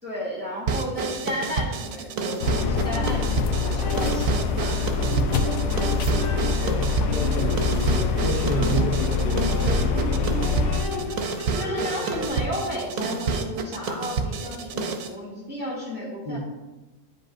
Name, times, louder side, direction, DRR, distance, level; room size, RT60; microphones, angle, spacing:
voice 1, 0.0-4.8 6.6-6.8 11.5-16.4, equal, 5° right, -8 dB, 2.1 m, -33 dB
sound 1, 0.7-15.1, right 5 dB, 85° right, 1.1 m, -29 dB
sound 2, 2.4-10.9, left 5 dB, 90° left, 1.0 m, -25 dB
sound 3, 2.5-12.3, left 1 dB, 60° left, 1.6 m, -33 dB
voice 2, 5.0-6.4 6.7-10.6 16.3-16.4, right 1 dB, 40° left, -5 dB, 1.0 m, -31 dB
9.6 x 5.1 x 2.5 m, 1.1 s
omnidirectional pair, 1.4 m